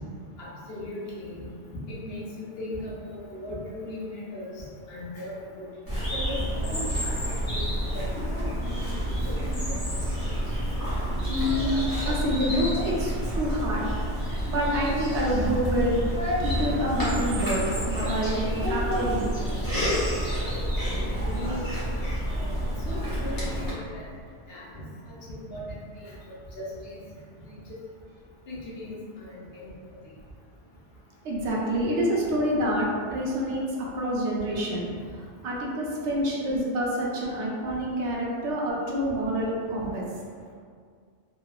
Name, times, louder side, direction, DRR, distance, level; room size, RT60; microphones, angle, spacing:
voice 1, 0.4-1.5 1.9-5.7 6.7-7.2 7.5-7.6 7.9-8.5 19.7-19.8 20.4-20.7 21.3-22.0 22.8-24.1 24.5-26.2 26.5-27.0 27.4-27.6 28.5-29.7, left 1 dB, 65° left, -7 dB, 0.8 m, -38 dB
Bird vocalization bird call bird song, 5.9-23.7, equal, 25° left, 0.6 m, -28 dB
voice 2, 11.3-13.9 14.5-15.9 16.6-19.3 31.2-33.6 33.9-34.9 35.1-40.0, equal, 75° right, -4 dB, 0.9 m, -27 dB
3.0 x 2.0 x 2.3 m, 2.1 s
omnidirectional pair, 1.2 m